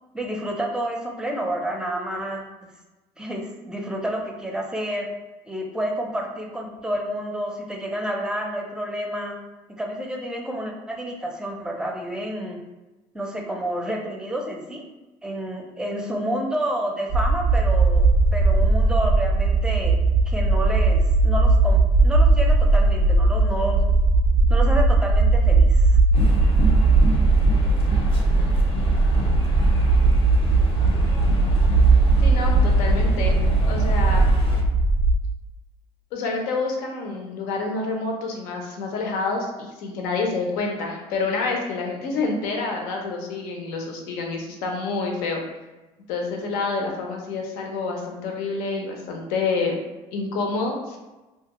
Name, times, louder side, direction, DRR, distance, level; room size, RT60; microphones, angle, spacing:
voice 1, 0.1-2.4 3.2-5.1 5.5-9.4 9.8-12.6 13.1-14.8 15.2-18.0 18.3-20.0 20.3-23.8 24.5-25.9, right 1 dB, 5° right, 0 dB, 0.5 m, -29 dB
sound 1, 17.1-35.2, right 3 dB, 65° right, 0.4 m, -18 dB
sound 2, 26.1-34.6, left 1 dB, 35° left, 0.6 m, -31 dB
voice 2, 32.2-33.4 33.7-34.3 36.1-45.4 46.1-49.8 50.1-51.0, left 3 dB, 80° left, 1 dB, 0.6 m, -28 dB
2.5 x 2.3 x 2.9 m, 1.1 s
supercardioid pair, 90°, 15 cm